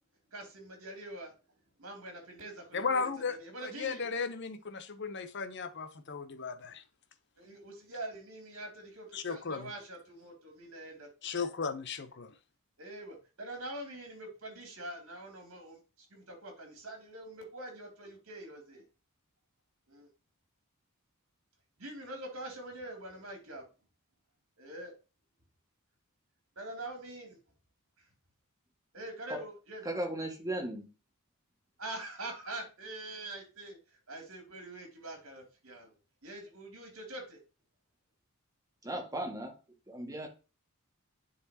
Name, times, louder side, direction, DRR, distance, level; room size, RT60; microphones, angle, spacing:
voice 1, 0.3-1.3 1.8-4.1 7.4-11.1 12.8-18.8 19.9-20.1 21.8-23.6 24.6-24.9 26.6-27.4 28.9-29.9 31.8-33.8 34.1-35.9 36.2-37.4, right 1 dB, 65° right, 2.7 m, -44 dB
voice 2, 2.7-3.4 3.6-6.8 9.1-9.7 11.2-12.3, left 5 dB, 50° left, 0.8 m, -35 dB
voice 3, 29.9-30.9 38.8-39.5 39.9-40.3, right 1 dB, 15° right, 1.8 m, -36 dB
9.9 x 4.2 x 2.8 m
head